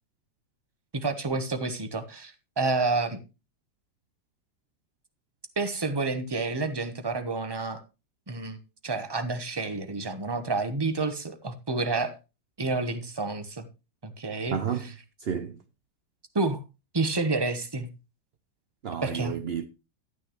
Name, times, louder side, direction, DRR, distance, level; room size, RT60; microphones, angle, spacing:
voice 1, 0.9-3.2 5.6-7.8 8.3-8.6 8.8-12.2 12.6-13.7 14.0-14.9 16.3-16.6 16.9-17.9 19.0-19.3, right 3 dB, 20° right, 0.8 m, -29 dB
voice 2, 14.5-14.9 15.2-15.6 18.8-19.7, right 8 dB, 70° right, 0.5 m, -31 dB
12.0 x 9.7 x 3.1 m
omnidirectional pair, 1.9 m